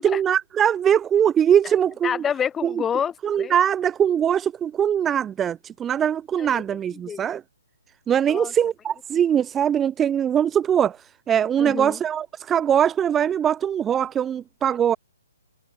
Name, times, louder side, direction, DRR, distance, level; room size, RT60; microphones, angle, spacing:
voice 1, 0.0-2.2 2.6-2.7 3.2-7.4 8.1-15.0, right 9 dB, 15° right, 1.7 m, -22 dB
voice 2, 2.0-3.5 6.4-7.2 8.3-8.5 11.6-12.0, left 8 dB, 10° left, 3.8 m, -29 dB
hypercardioid pair, 150°, 0 cm